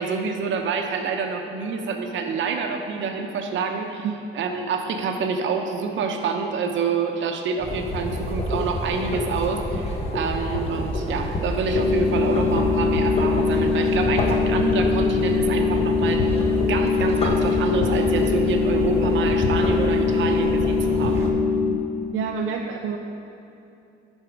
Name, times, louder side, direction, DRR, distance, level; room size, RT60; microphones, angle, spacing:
voice 1, 0.0-4.1 4.3-16.3 16.7-21.3, right 5 dB, 70° right, 4 dB, 0.8 m, -27 dB
sound 1, 7.6-21.3, left 1 dB, 30° left, 1.1 m, -28 dB
sound 2, 11.7-21.7, left 4 dB, 80° left, 1.3 m, -22 dB
voice 2, 22.1-23.0, right 6 dB, 90° right, 1 dB, 0.5 m, -27 dB
11.0 x 4.5 x 4.7 m, 2.8 s
cardioid pair, 90°, 20 cm